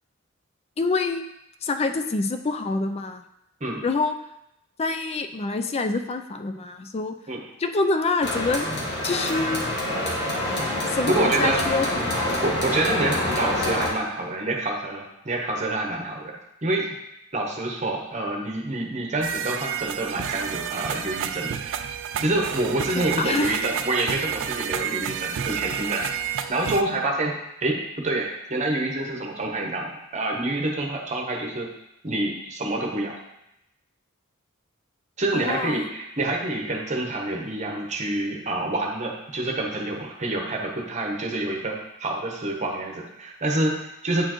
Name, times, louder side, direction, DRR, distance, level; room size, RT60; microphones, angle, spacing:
voice 1, 0.8-1.2 1.6-3.2 3.8-4.1 4.8-7.1 7.6-8.7 9.0-9.7 10.9-11.9 12.2-12.4 23.0-23.6 35.3-35.9, left 3 dB, 30° left, 7 dB, 0.4 m, -26 dB
sound 1, 8.2-13.9, left 1 dB, 55° left, 1.4 m, -26 dB
voice 2, 11.1-11.6 12.4-17.0 17.3-21.9 22.2-27.3 27.6-27.8 28.0-31.7 32.0-33.1 35.2-44.3, right 2 dB, 35° right, 0 dB, 0.9 m, -27 dB
sound 2, 19.2-26.8, right 9 dB, 60° right, 0.3 m, -30 dB
8.8 x 4.4 x 3.0 m, 0.85 s
head